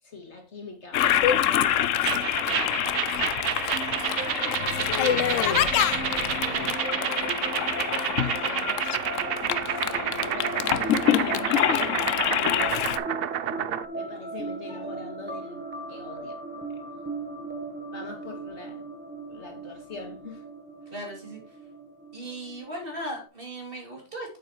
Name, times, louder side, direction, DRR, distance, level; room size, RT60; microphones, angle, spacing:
voice 1, 0.0-2.5 5.1-9.0 9.5-13.0 13.9-15.6 15.9-16.8 17.9-18.9 19.3-20.4, left 3 dB, 50° left, 2.5 m, -42 dB
Toilet flush, 0.9-13.0, left 10 dB, 70° left, 0.9 m, -26 dB
sound 1, 2.0-13.9, right 11 dB, 70° right, 0.5 m, -30 dB
sound 2, 3.7-23.3, right 2 dB, 10° right, 0.9 m, -38 dB
voice 2, 20.9-21.6 22.1-24.4, right 1 dB, 35° right, 3.0 m, -37 dB
9.2 x 7.4 x 3.0 m
omnidirectional pair, 1.5 m